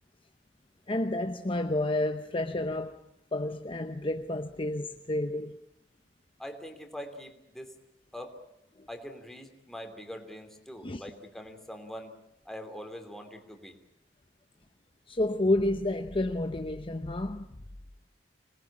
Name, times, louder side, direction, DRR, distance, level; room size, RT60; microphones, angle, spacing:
voice 1, 0.9-3.0 3.3-5.6 8.8-8.9 10.8-11.0 15.1-17.5, left 1 dB, 30° left, 0.9 m, -30 dB
voice 2, 6.4-7.7 8.1-8.3 8.9-12.2 12.4-13.8, equal, ahead, 3.1 m, -43 dB
26.5 x 20.0 x 8.7 m
head